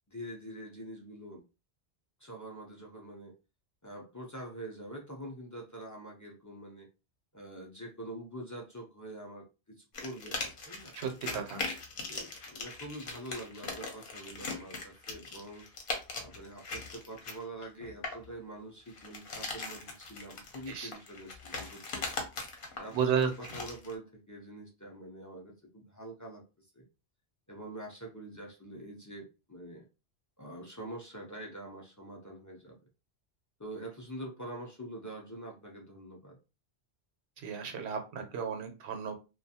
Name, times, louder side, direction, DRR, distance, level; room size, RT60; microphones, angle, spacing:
voice 1, 0.1-1.4 2.2-3.3 3.8-6.9 7.3-11.0 12.1-15.7 16.2-22.1 22.8-26.8 27.5-29.8 30.4-32.8 33.6-36.4, right 1 dB, 30° left, -1 dB, 0.3 m, -45 dB
sound 1, 9.9-18.3 18.9-23.9, left 3 dB, 60° left, 0.8 m, -40 dB
voice 2, 10.9-11.7 20.7-20.9 22.9-23.3 37.4-39.1, right 7 dB, 85° right, 5 dB, 0.9 m, -33 dB
2.4 x 2.2 x 2.7 m, 0.30 s
omnidirectional pair, 1.1 m